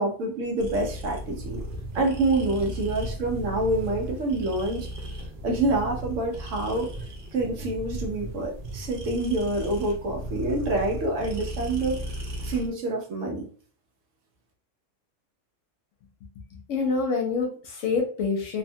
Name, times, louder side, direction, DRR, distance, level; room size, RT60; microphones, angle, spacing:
voice 1, 0.0-1.6 1.9-4.9 5.4-6.9 7.3-12.1 12.4-13.5, right 2 dB, 75° right, 1.1 m, -27 dB
sound 1, 0.6-12.7, right 1 dB, 55° right, 0.6 m, -36 dB
voice 2, 16.5-18.6, left 4 dB, 75° left, 1.0 m, -27 dB
2.9 x 2.1 x 2.7 m
omnidirectional pair, 1.3 m